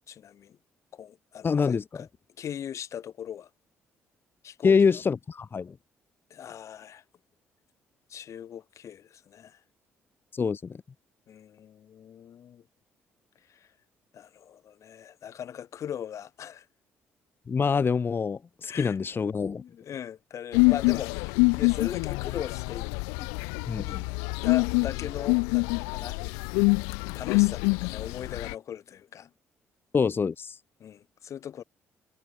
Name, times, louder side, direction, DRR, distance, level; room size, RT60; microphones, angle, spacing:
voice 1, 0.1-0.6 0.9-2.1 2.4-3.5 4.4-5.0 6.3-7.0 8.1-9.6 11.3-12.6 13.5-13.7 14.1-16.7 18.6-19.0 19.5-22.9 23.2-23.3 23.9-24.0 24.4-26.2 27.1-29.3 30.8-31.6, left 9 dB, 60° left, 1.2 m, -39 dB
voice 2, 1.4-2.0 4.6-5.7 10.3-10.8 17.5-19.6 23.7-24.0 29.9-30.5, left 5 dB, 40° left, 1.1 m, -25 dB
sound 1, 20.5-28.5, left 36 dB, 90° left, 0.6 m, -26 dB
supercardioid pair, 60°, 6 cm